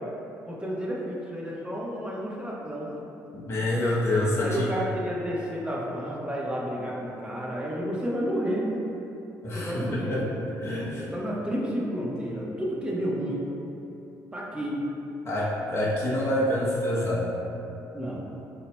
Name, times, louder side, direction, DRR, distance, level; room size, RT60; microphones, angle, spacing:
voice 1, 0.5-2.9 4.4-8.7 9.5-10.2 11.0-13.5 14.3-14.8 17.9-18.3, equal, 15° right, -5 dB, 1.1 m, -31 dB
voice 2, 3.3-4.7 9.4-10.3 10.6-11.0 15.3-17.3, left 1 dB, 40° left, -6 dB, 0.9 m, -27 dB
8.4 x 2.8 x 2.2 m, 2.9 s
supercardioid pair, 75°, 7 cm